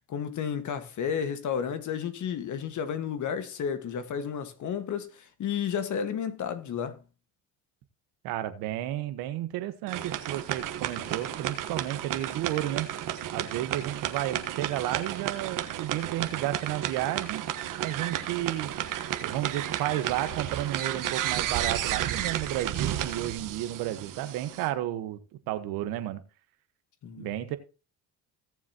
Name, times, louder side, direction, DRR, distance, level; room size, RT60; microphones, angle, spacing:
voice 1, 0.1-7.0 27.0-27.3, left 7 dB, 55° left, 1.6 m, -32 dB
voice 2, 8.2-12.9 13.3-17.4 17.8-18.7 19.2-25.2 25.5-26.2 27.2-27.6, right 13 dB, 80° right, 1.3 m, -32 dB
sound 1, 9.9-24.7, right 11 dB, 60° right, 1.4 m, -32 dB
17.0 x 7.3 x 2.9 m
supercardioid pair, 90°, 36 cm